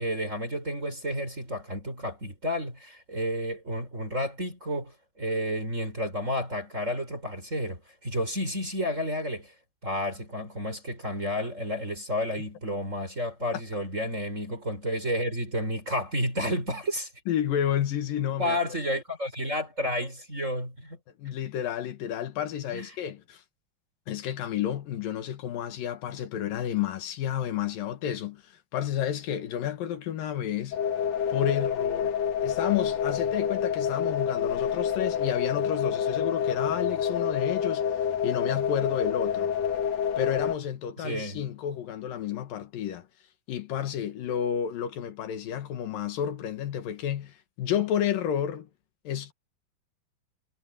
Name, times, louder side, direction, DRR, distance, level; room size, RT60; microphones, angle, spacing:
voice 1, 0.0-9.5 9.8-17.1 18.4-21.0 22.7-22.9 41.0-41.4, equal, 20° right, 5.7 m, -31 dB
voice 2, 17.3-18.6 21.2-23.4 24.1-30.8 31.3-32.1 32.4-37.9 38.2-39.5 40.2-43.1 43.5-48.7 49.0-49.3, left 10 dB, 75° left, 3.3 m, -31 dB
sound 1, 30.7-40.5, left 8 dB, 55° left, 2.4 m, -28 dB
omnidirectional pair, 4.1 m